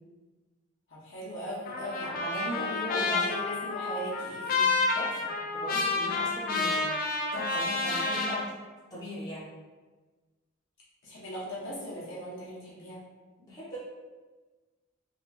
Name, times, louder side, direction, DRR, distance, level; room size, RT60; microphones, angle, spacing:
voice 1, 0.9-2.1 2.7-4.7 11.0-13.0, equal, 65° left, -7 dB, 0.8 m, -38 dB
Trumpet, 1.6-8.4, left 3 dB, 45° left, 0.4 m, -29 dB
voice 2, 2.0-3.2 4.9-6.8 7.3-8.4 8.9-9.5 13.4-13.8, equal, 20° left, -10 dB, 1.0 m, -38 dB
2.8 x 2.7 x 2.3 m, 1.3 s
head